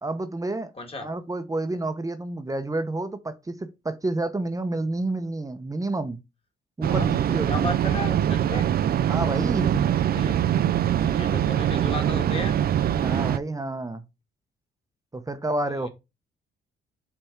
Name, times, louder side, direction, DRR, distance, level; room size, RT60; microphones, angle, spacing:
voice 1, 0.0-0.7 1.0-6.2 6.8-7.7 9.0-9.9 12.9-14.0 15.1-15.9, right 2 dB, 15° right, 0.8 m, -29 dB
voice 2, 0.7-1.1 6.9-7.1 7.5-8.7 10.1-10.4 11.1-12.6 15.7-15.9, left 3 dB, 30° left, 1.8 m, -34 dB
sound 1, 6.8-13.4, right 10 dB, 50° right, 0.4 m, -23 dB
7.8 x 3.5 x 4.4 m
cardioid pair, 90°, 20 cm